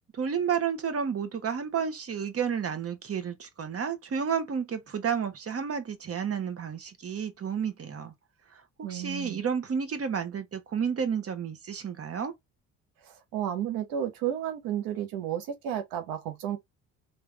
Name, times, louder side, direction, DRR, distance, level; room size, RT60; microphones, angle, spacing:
voice 1, 0.1-8.1 8.5-12.3, right 7 dB, 45° right, 1.1 m, -31 dB
voice 2, 8.8-9.4 13.0-16.6, right 10 dB, 80° right, 1.1 m, -32 dB
3.6 x 2.8 x 3.3 m
supercardioid pair, 65°, 34 cm